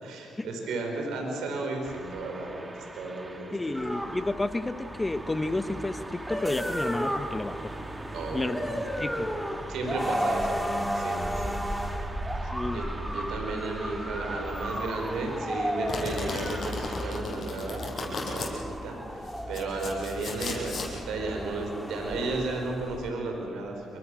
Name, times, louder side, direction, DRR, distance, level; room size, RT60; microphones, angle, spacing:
voice 1, 0.0-3.8 8.1-8.6 9.7-11.8 12.7-12.8 13.1-23.9, right 3 dB, 80° right, 2 dB, 5.1 m, -34 dB
sound 1, 1.8-17.2, right 2 dB, 25° right, 2.5 m, -43 dB
voice 2, 3.5-7.7 8.3-9.3 12.5-12.8, left 2 dB, 20° left, 10 dB, 1.5 m, -31 dB
sound 2, 3.8-23.1, equal, ahead, 3.0 m, -34 dB
Domestic sounds home sounds, 15.9-18.5 19.3-20.9, left 4 dB, 50° left, 7.3 m, -36 dB
28.0 x 24.0 x 6.6 m, 2.4 s
cardioid pair, 70°, 0 cm